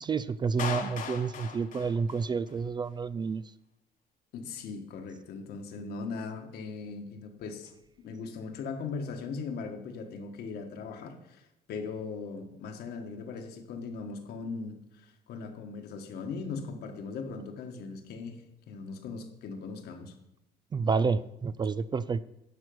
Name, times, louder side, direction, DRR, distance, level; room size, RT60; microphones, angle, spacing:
voice 1, 0.0-3.4 20.7-22.2, right 5 dB, 25° right, 15 dB, 0.3 m, -29 dB
Clapping, 0.6-2.6, left 6 dB, 50° left, 1.2 m, -38 dB
voice 2, 4.3-7.7 8.0-20.1, left 4 dB, 70° left, 4 dB, 1.6 m, -39 dB
11.0 x 4.5 x 7.9 m, 0.86 s
cardioid pair, 110°, 17 cm